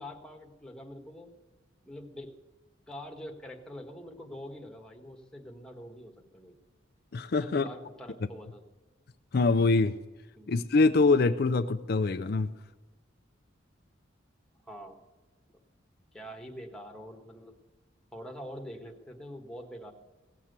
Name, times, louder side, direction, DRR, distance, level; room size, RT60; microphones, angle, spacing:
voice 1, 0.0-1.3 1.8-2.3 2.9-6.5 7.4-8.6 10.4-10.5 14.7-15.0 16.1-17.5 18.1-19.9, equal, 5° left, 1.4 m, -44 dB
voice 2, 7.1-7.6 9.3-9.9 10.5-12.5, left 3 dB, 55° left, 0.5 m, -24 dB
17.0 x 7.4 x 8.1 m
head